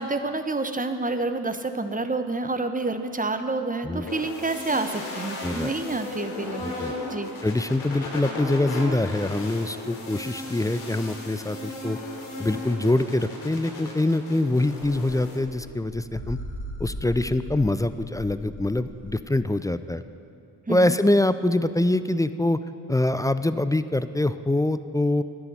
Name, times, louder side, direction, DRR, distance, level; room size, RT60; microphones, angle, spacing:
voice 1, 0.0-6.7 7.1-7.3 20.7-20.9, right 3 dB, 15° right, 8 dB, 1.0 m, -28 dB
sound 1, 4.1-15.4, left 2 dB, 80° left, 2.3 m, -36 dB
voice 2, 5.4-5.7 6.6-6.9 7.4-12.0 12.4-16.4 16.8-20.0 20.7-22.6 22.9-25.2, left 2 dB, 10° left, 12 dB, 0.3 m, -24 dB
sound 2, 14.9-19.4, left 1 dB, 25° left, 2.9 m, -39 dB
11.0 x 7.1 x 9.0 m, 2.5 s
hypercardioid pair, 40°, 48 cm